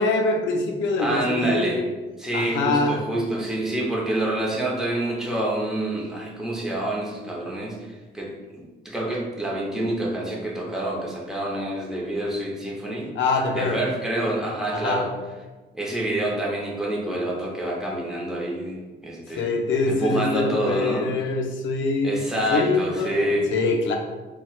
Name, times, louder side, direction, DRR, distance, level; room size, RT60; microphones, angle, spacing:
voice 1, 0.0-1.8 2.3-3.0 13.2-13.8 14.7-15.0 19.3-24.0, left 3 dB, 75° left, 2 dB, 0.5 m, -24 dB
voice 2, 1.0-1.8 2.2-13.1 13.5-15.1 15.7-19.5 19.9-21.1 22.0-23.5, right 1 dB, 5° right, -4 dB, 0.8 m, -27 dB
4.1 x 2.2 x 2.4 m, 1.2 s
cardioid pair, 90°, 20 cm